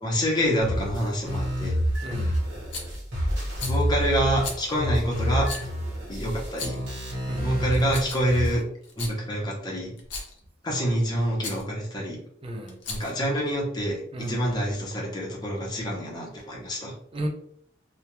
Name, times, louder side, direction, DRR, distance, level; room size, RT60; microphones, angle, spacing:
voice 1, 0.0-1.8 3.7-5.5 6.1-6.8 7.4-8.6 9.0-9.9 10.6-12.2 12.9-16.9, equal, 20° left, -3 dB, 0.6 m, -27 dB
sound 1, 0.6-8.6, equal, 60° right, 0.9 m, -29 dB
voice 2, 2.0-2.4 7.3-7.6 12.4-12.8 14.1-14.4 17.1-17.3, right 1 dB, 30° right, 1 dB, 0.4 m, -34 dB
Rattle, 2.7-3.0 3.5-3.8 4.4-4.6 5.4-5.7 6.4-6.9 7.7-8.3 8.8-9.2 10.0-10.4 11.4-11.6 12.7-13.2, left 4 dB, 65° left, 0.6 m, -36 dB
2.3 x 2.1 x 2.9 m, 0.64 s
head